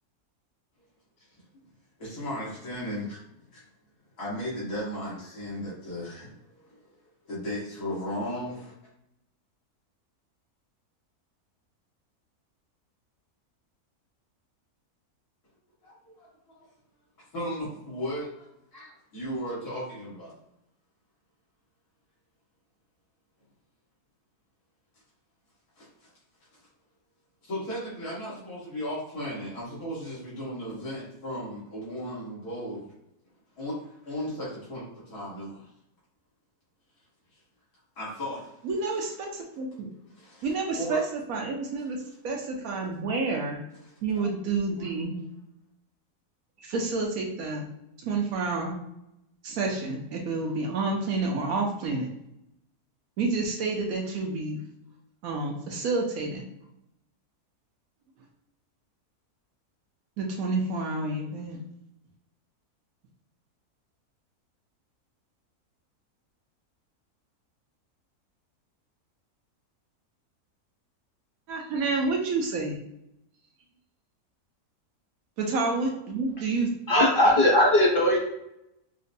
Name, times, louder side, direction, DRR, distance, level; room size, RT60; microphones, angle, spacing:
voice 1, 2.0-3.2 3.5-3.6 4.2-6.9 7.3-8.7 15.8-16.7 17.3-20.4 25.8-26.1 27.4-32.9 33.6-33.8 34.0-35.6 38.0-38.7 39.7-39.8 40.1-40.5 40.8-41.0 43.8-44.3 44.8-44.9, equal, 75° left, -9 dB, 2.1 m, -36 dB
voice 2, 38.6-39.9 40.4-41.0 41.3-43.6 44.0-45.2 46.6-47.7 48.0-48.8 49.4-52.1 53.2-54.6 55.2-56.4 60.2-61.6 71.5-72.8 75.4-76.7, right 3 dB, 70° right, 0 dB, 1.0 m, -29 dB
voice 3, 76.9-78.2, left 1 dB, 45° left, -3 dB, 0.9 m, -19 dB
4.8 x 2.2 x 2.6 m, 0.82 s
omnidirectional pair, 1.6 m